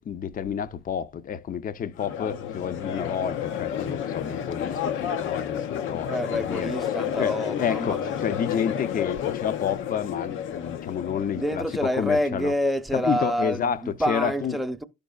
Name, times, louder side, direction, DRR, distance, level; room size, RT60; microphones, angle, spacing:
voice 1, 0.0-6.1 6.4-6.7 7.2-12.5 12.9-14.6, left 8 dB, 45° left, 0.6 m, -30 dB
Crowd, 2.0-12.1, left 9 dB, 80° left, 0.7 m, -31 dB
voice 2, 6.1-8.3 11.3-14.8, equal, ahead, 0.8 m, -28 dB
12.5 x 5.2 x 2.3 m
cardioid pair, 90°, 20 cm